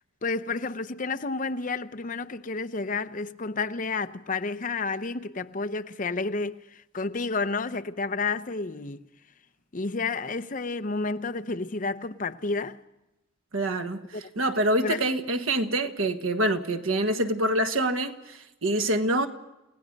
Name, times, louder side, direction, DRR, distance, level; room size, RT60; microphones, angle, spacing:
voice 1, 0.2-9.1 9.7-12.8 14.1-14.2 14.8-15.0, left 3 dB, 40° left, 0.7 m, -30 dB
voice 2, 13.5-19.3, right 1 dB, 80° right, 1.5 m, -26 dB
29.5 x 17.0 x 5.3 m
head